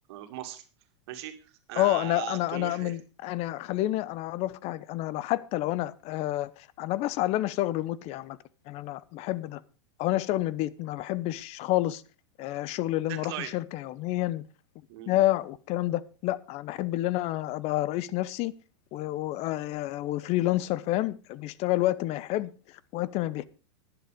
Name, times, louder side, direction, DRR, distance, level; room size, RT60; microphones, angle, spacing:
voice 1, 0.1-0.6 1.1-3.0 13.1-13.5 14.9-15.2, right 13 dB, 60° right, 2.3 m, -38 dB
voice 2, 1.8-8.4 8.7-9.6 10.0-12.0 12.4-14.4 15.1-18.5 18.9-22.5 22.9-23.4, left 16 dB, 45° left, 0.8 m, -29 dB
11.5 x 10.0 x 5.1 m
hypercardioid pair, 110°, 15 cm